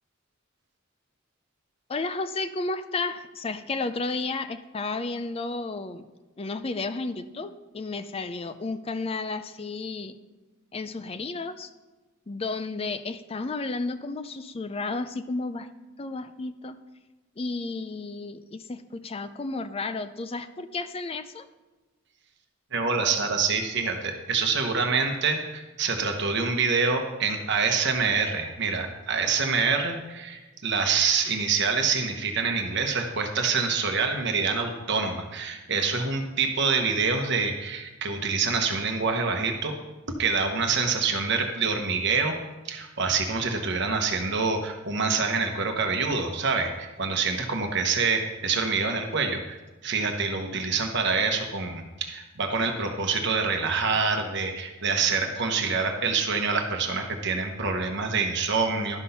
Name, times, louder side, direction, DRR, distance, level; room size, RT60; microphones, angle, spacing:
voice 1, 1.9-6.1 6.4-10.2 10.7-11.7 12.3-15.7 16.0-16.8 17.4-21.5, left 3 dB, 25° left, 11 dB, 0.4 m, -32 dB
voice 2, 22.7-39.8 40.1-42.3 42.6-49.6 49.8-59.0, right 4 dB, 55° right, 4 dB, 1.0 m, -26 dB
11.5 x 6.1 x 5.6 m, 1.2 s
head